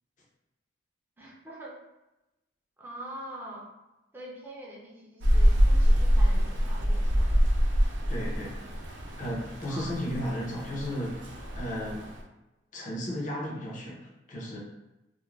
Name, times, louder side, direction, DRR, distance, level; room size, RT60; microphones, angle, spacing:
voice 1, 1.2-1.8 2.8-3.7 4.1-7.3 9.7-9.9, right 1 dB, 10° right, -4 dB, 0.6 m, -44 dB
Rain, 5.2-12.2, equal, 70° right, 0.5 m, -25 dB
voice 2, 8.1-8.6 9.2-11.3 11.6-12.1 12.7-14.6, equal, 40° left, -3 dB, 0.6 m, -34 dB
2.4 x 2.1 x 3.1 m, 0.98 s
head